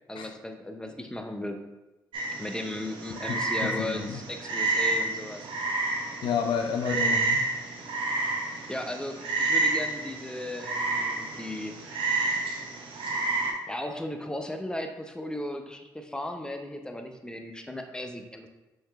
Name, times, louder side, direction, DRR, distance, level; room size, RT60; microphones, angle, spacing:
voice 1, 0.1-1.6 2.4-5.5 8.7-11.8 13.7-18.5, left 1 dB, 10° left, 5 dB, 0.6 m, -36 dB
Frog, 2.1-13.5, right 3 dB, 65° right, 0.8 m, -30 dB
voice 2, 3.6-4.2 6.2-7.5, left 6 dB, 65° left, 6 dB, 0.5 m, -30 dB
5.2 x 3.6 x 2.4 m, 1.0 s
hypercardioid pair, 50°, 9 cm